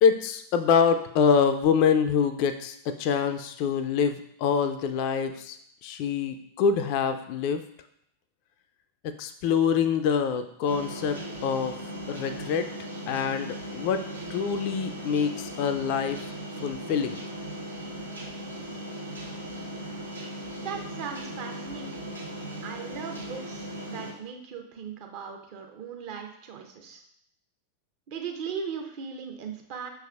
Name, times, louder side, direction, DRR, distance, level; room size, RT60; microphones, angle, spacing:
voice 1, 0.0-5.6 5.8-7.6 9.0-11.2 11.4-11.7 12.1-12.7 13.1-14.0 14.3-16.2 16.6-17.2, left 6 dB, 45° left, 9 dB, 0.3 m, -25 dB
sound 1, 10.6-24.1, right 1 dB, 80° right, 0.8 m, -38 dB
voice 2, 20.5-22.0 22.6-27.0 28.1-29.9, right 6 dB, 45° right, 3 dB, 0.7 m, -38 dB
6.0 x 3.4 x 2.3 m, 0.71 s
figure-of-eight pair, 90°, 0 cm